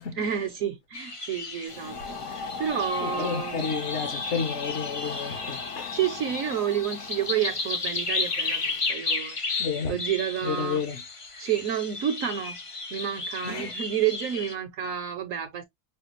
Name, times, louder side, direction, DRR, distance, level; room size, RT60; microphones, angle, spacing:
voice 1, 0.1-2.0 2.3-3.7 5.9-9.6 9.9-10.8 11.4-12.6 12.9-15.6, right 9 dB, 65° right, 0.9 m, -30 dB
sound 1, 0.9-14.5, left 3 dB, 35° left, 0.5 m, -34 dB
sound 2, 1.7-8.8, left 5 dB, 85° left, 1.6 m, -39 dB
voice 2, 3.0-5.9 9.6-10.0 10.4-11.0 13.4-13.7, left 6 dB, 55° left, 1.0 m, -31 dB
5.6 x 2.3 x 2.8 m
omnidirectional pair, 1.7 m